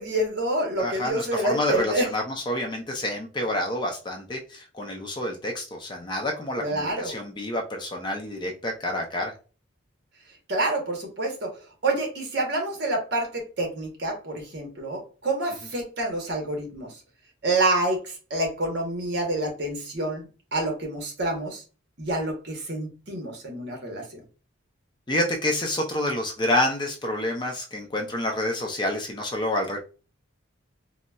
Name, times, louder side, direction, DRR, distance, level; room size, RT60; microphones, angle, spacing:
voice 1, 0.0-2.1 6.6-7.2 10.5-11.5 11.8-16.9 17.4-20.3 20.5-21.6 22.0-24.2, right 2 dB, 55° right, 1 dB, 0.9 m, -27 dB
voice 2, 0.8-9.3 25.1-29.8, left 1 dB, 20° left, 2 dB, 0.4 m, -28 dB
3.9 x 2.0 x 2.2 m, 0.35 s
head